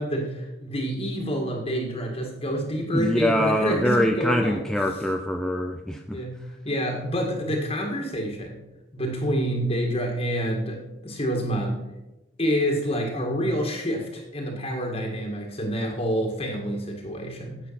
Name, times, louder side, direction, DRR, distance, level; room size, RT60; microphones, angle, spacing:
voice 1, 0.0-4.6 6.1-6.4 6.7-8.5 8.9-10.8 11.0-11.8 12.4-17.6, equal, 30° left, 1 dB, 1.9 m, -27 dB
voice 2, 2.9-6.2, left 1 dB, 5° left, 3 dB, 0.5 m, -24 dB
10.0 x 7.9 x 5.9 m, 0.99 s
head